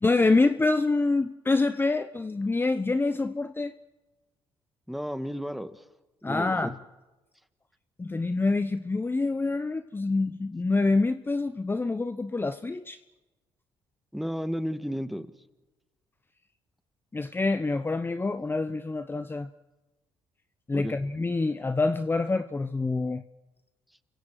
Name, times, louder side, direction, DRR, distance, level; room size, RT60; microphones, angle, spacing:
voice 1, 0.0-3.7 6.2-6.8 8.0-13.0 17.1-19.5 20.7-23.2, left 3 dB, 20° left, 11 dB, 1.0 m, -26 dB
voice 2, 4.9-5.8 6.2-6.7 14.1-15.3 20.7-21.0, equal, ahead, 10 dB, 1.7 m, -33 dB
29.0 x 24.0 x 4.9 m, 1.1 s
supercardioid pair, 65°, 10 cm